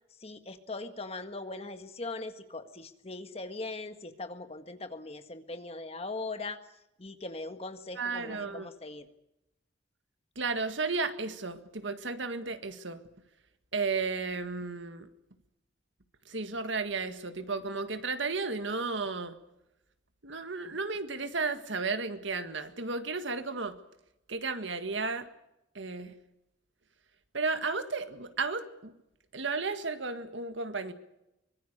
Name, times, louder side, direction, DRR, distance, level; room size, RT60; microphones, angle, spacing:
voice 1, 0.2-6.6 7.0-9.1, left 3 dB, 30° left, 8 dB, 1.7 m, -40 dB
voice 2, 8.0-8.7 10.4-13.0 13.7-15.1 16.3-19.4 20.2-23.8 24.3-25.3 25.8-26.1 27.3-28.9 29.3-30.9, right 4 dB, 75° right, 9 dB, 1.8 m, -33 dB
24.5 x 20.5 x 6.7 m, 0.88 s
head